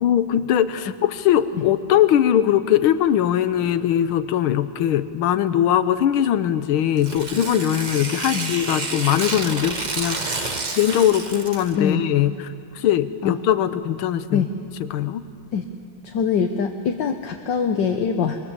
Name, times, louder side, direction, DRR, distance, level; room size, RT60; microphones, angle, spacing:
voice 1, 0.0-12.5 12.8-14.5 14.9-15.2, left 10 dB, 90° left, 13 dB, 1.7 m, -21 dB
Tearing, 7.0-11.8, right 3 dB, 30° right, 1.0 m, -29 dB
voice 2, 16.0-18.4, left 6 dB, 65° left, 5 dB, 1.6 m, -23 dB
24.5 x 22.5 x 7.4 m, 2.4 s
omnidirectional pair, 2.3 m